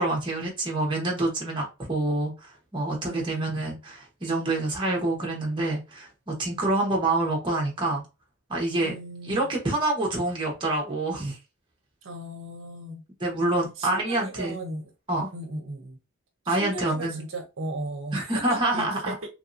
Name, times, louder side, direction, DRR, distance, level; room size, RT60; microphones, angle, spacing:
voice 1, 0.0-8.0 8.5-8.9 9.2-11.4 13.2-14.6 15.1-15.3 16.5-17.2 18.1-19.1, right 2 dB, 20° right, 0.8 m, -27 dB
voice 2, 3.0-3.6 8.8-9.5 12.0-13.0 13.8-14.9 15.3-16.0 16.4-19.3, right 2 dB, 65° right, 0.7 m, -36 dB
3.0 x 2.6 x 2.5 m
head